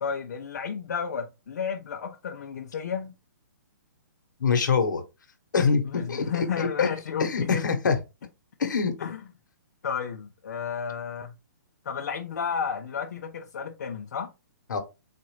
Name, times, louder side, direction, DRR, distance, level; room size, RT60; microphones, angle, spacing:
voice 1, 0.0-3.1 5.8-7.6 9.0-9.2 9.8-11.3 11.8-14.3, left 7 dB, 60° left, 0.5 m, -32 dB
voice 2, 4.4-5.0 5.5-6.9 7.2-8.0 8.6-8.9 14.7-14.8, left 5 dB, 75° left, 1.0 m, -24 dB
4.0 x 2.5 x 3.1 m
hypercardioid pair, 170°, 10 cm